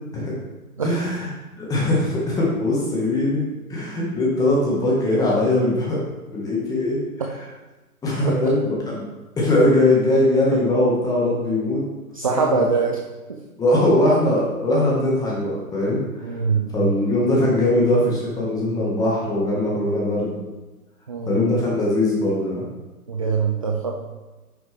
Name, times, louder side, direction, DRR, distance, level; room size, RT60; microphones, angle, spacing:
voice 1, 0.8-1.3 1.6-6.0 6.3-7.0 8.0-9.1 9.4-11.8 12.3-12.7 13.6-16.4 16.7-20.4 21.3-22.6, left 1 dB, 10° left, -5 dB, 1.8 m, -21 dB
voice 2, 12.1-13.0 13.3-13.4 16.2-16.9 21.1-21.4 23.1-23.9, right 5 dB, 25° right, 0 dB, 0.5 m, -23 dB
10.5 x 6.2 x 3.6 m, 1.2 s
figure-of-eight pair, 140°, 45 cm